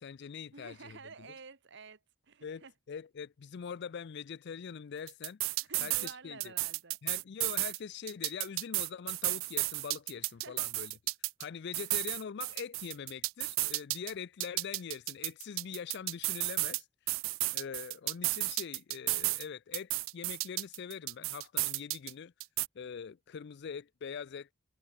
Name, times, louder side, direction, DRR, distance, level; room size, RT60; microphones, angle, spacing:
voice 1, 0.0-1.0 2.4-6.5 7.0-10.9 11.4-17.2 17.5-22.3 22.7-24.5, left 6 dB, 60° left, 0.4 m, -43 dB
voice 2, 0.5-2.7 5.6-7.0 10.4-10.7 11.8-11.9, right 4 dB, 65° right, 1.6 m, -51 dB
sound 1, 5.1-6.1 6.4-7.8 8.1-11.4 11.7-14.1 14.4-16.8 17.1-19.4 19.7-22.1 22.4-22.7, right 22 dB, 85° right, 0.3 m, -33 dB
head